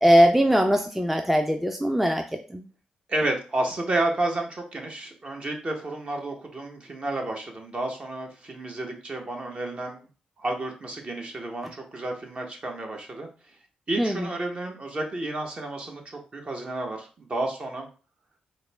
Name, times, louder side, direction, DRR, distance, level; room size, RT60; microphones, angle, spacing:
voice 1, 0.0-2.2 2.5-2.6 14.0-14.3, equal, 5° right, 5 dB, 0.4 m, -20 dB
voice 2, 3.1-10.1 10.4-13.3 13.9-17.9, right 2 dB, 40° right, 2 dB, 1.0 m, -31 dB
4.0 x 2.1 x 3.3 m, 0.36 s
supercardioid pair, 55°, 3 cm